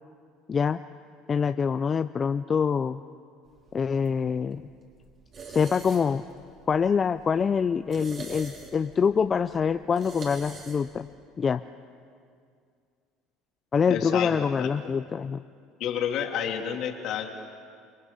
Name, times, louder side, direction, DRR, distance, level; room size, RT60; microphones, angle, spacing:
voice 1, 0.5-0.8 1.3-3.0 3.7-4.6 5.5-6.2 6.7-11.1 11.4-11.6 13.7-15.4, left 6 dB, 35° left, 10 dB, 0.6 m, -25 dB
sound 1, 3.5-11.1, right 4 dB, 45° right, 5.5 m, -46 dB
voice 2, 13.9-14.7 15.8-17.3, left 8 dB, 60° left, 3 dB, 2.9 m, -30 dB
29.5 x 21.0 x 6.9 m, 2.3 s
supercardioid pair, 95°, 0 cm